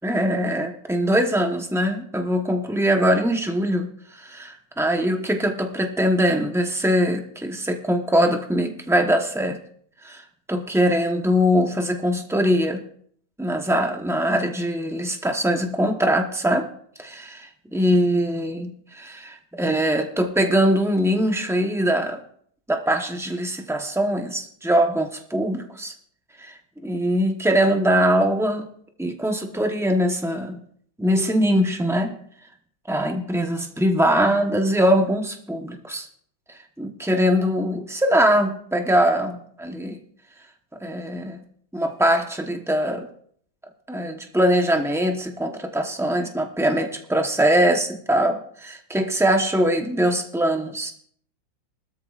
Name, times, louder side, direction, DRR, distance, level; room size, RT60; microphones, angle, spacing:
voice 1, 0.0-9.6 10.0-12.8 13.4-16.6 17.0-22.2 22.7-25.9 26.4-28.6 29.0-30.6 31.0-32.1 32.9-36.1 36.8-40.0 40.8-41.4 41.7-43.1 43.9-50.9, equal, 5° right, 3 dB, 0.3 m, -22 dB
20.0 x 13.0 x 2.4 m, 0.63 s
omnidirectional pair, 2.1 m